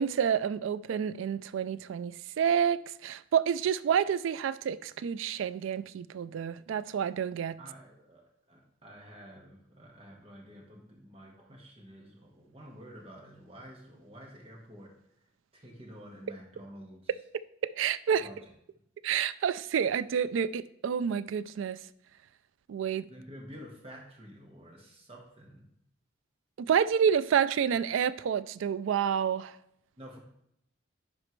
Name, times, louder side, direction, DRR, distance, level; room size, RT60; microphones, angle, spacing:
voice 1, 0.0-7.6 17.6-18.3 19.0-21.8 22.7-23.1 26.6-29.6, right 8 dB, 85° right, 0.3 m, -29 dB
voice 2, 7.6-8.2 8.5-14.9 15.5-17.1 18.2-18.4 23.1-25.7 30.0-30.2, equal, 30° right, 1.4 m, -49 dB
11.0 x 4.3 x 3.1 m
head